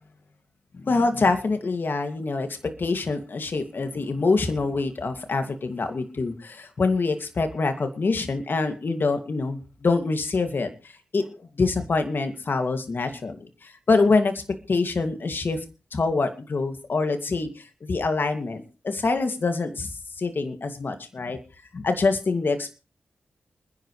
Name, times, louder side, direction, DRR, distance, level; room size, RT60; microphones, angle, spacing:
voice 1, 0.7-2.5 2.8-10.7 11.1-14.4 14.7-15.6 15.9-19.9 20.2-21.4 21.7-22.7, left 3 dB, 55° left, 7 dB, 2.5 m, -25 dB
27.5 x 10.5 x 3.3 m, 0.34 s
cardioid pair, 60°, 4 cm